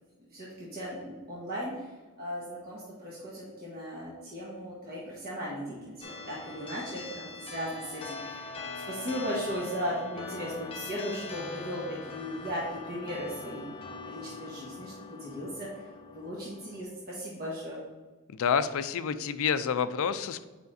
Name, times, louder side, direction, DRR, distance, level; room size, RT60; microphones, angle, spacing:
voice 1, 0.2-6.0 6.3-13.7 14.1-17.8, equal, 45° right, -6 dB, 1.4 m, -37 dB
sound 1, 6.0-16.8, left 3 dB, 25° left, 0.8 m, -42 dB
voice 2, 18.4-20.4, left 7 dB, 65° left, 12 dB, 0.4 m, -28 dB
8.1 x 5.0 x 2.6 m, 1.3 s
head